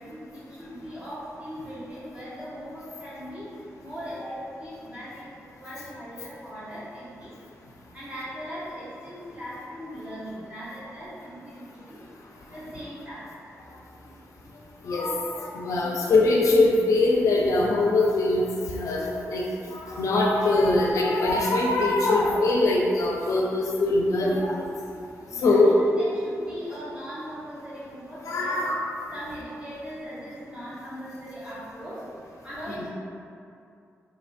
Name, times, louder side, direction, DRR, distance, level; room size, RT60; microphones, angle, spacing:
voice 1, 0.0-3.5 3.8-7.3 7.9-12.0 12.5-13.3 25.2-28.6 29.1-32.0 32.4-32.9, equal, 20° right, -10 dB, 1.4 m, -39 dB
voice 2, 14.8-18.4 18.7-19.4 19.7-24.6 25.4-25.7 28.3-28.8 32.7-32.8, left 2 dB, 80° left, -2 dB, 0.5 m, -22 dB
4.2 x 2.9 x 2.5 m, 2.5 s
cardioid pair, 85°, 5 cm